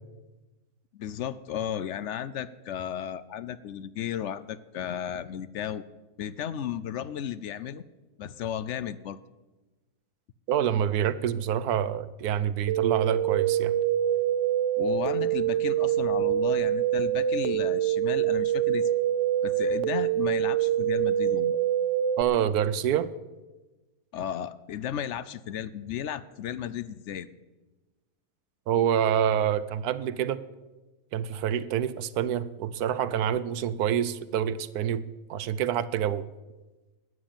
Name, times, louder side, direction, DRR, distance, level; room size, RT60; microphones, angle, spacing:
voice 1, 0.9-5.8 6.2-7.8 8.2-9.2 14.8-18.9 19.4-21.6 24.1-27.3, left 9 dB, 65° left, 16 dB, 0.7 m, -34 dB
voice 2, 10.5-13.7 22.2-23.1 28.7-30.4 31.1-35.0 35.3-36.3, right 9 dB, 80° right, 16 dB, 1.2 m, -27 dB
sound 1, 12.7-22.2, right 11 dB, 60° right, 0.8 m, -25 dB
12.5 x 9.6 x 8.8 m, 1.2 s
omnidirectional pair, 1.6 m